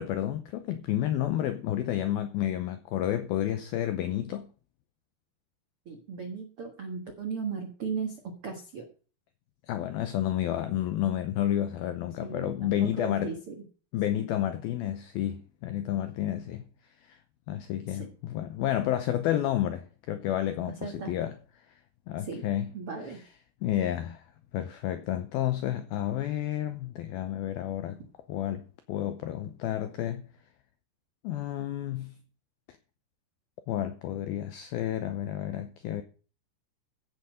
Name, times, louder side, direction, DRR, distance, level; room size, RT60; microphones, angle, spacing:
voice 1, 0.0-4.5 9.7-13.3 13.9-16.6 17.0-17.2 17.5-21.4 22.1-22.7 23.6-24.2 24.5-28.0 28.3-30.3 31.2-32.1 33.7-36.0, left 12 dB, 85° left, 2.1 m, -30 dB
voice 2, 5.8-8.8 12.2-13.6 17.9-18.1 20.8-21.1 22.2-22.4 22.7-23.2, right 5 dB, 70° right, 1.3 m, -37 dB
15.5 x 7.1 x 6.4 m
omnidirectional pair, 5.3 m